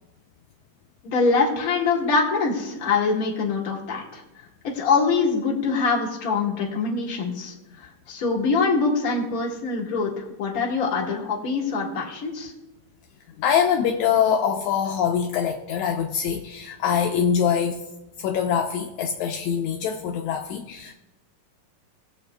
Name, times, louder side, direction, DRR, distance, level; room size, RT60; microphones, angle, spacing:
voice 1, 1.0-4.2 4.6-12.5, left 4 dB, 35° left, -3 dB, 1.6 m, -24 dB
voice 2, 13.4-17.8 18.2-20.9, left 8 dB, 85° left, 3 dB, 1.7 m, -24 dB
20.5 x 7.2 x 2.2 m, 0.98 s
omnidirectional pair, 3.9 m